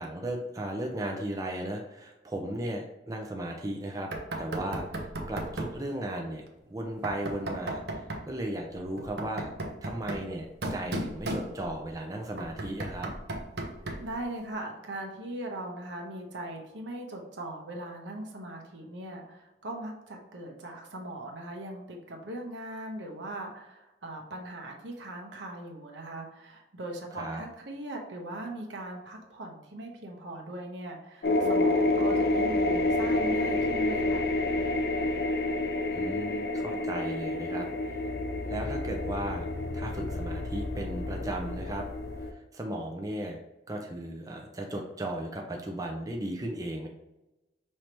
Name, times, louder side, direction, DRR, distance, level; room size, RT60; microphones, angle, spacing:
voice 1, 0.0-4.1 4.4-6.4 6.7-9.5 9.8-13.1 27.2-27.4 35.9-38.0 38.5-39.5 39.7-41.8 42.2-43.4 43.7-46.9, right 1 dB, 20° right, 1 dB, 0.5 m, -36 dB
Knock, 4.1-5.8 7.0-8.3 9.0-11.9 12.4-14.2, right 1 dB, 65° right, 0.7 m, -36 dB
voice 2, 14.0-34.3, right 1 dB, 90° right, 1 dB, 1.0 m, -40 dB
sound 1, 31.2-42.3, left 2 dB, 60° left, 0.5 m, -29 dB
5.6 x 3.2 x 3.0 m, 0.99 s
head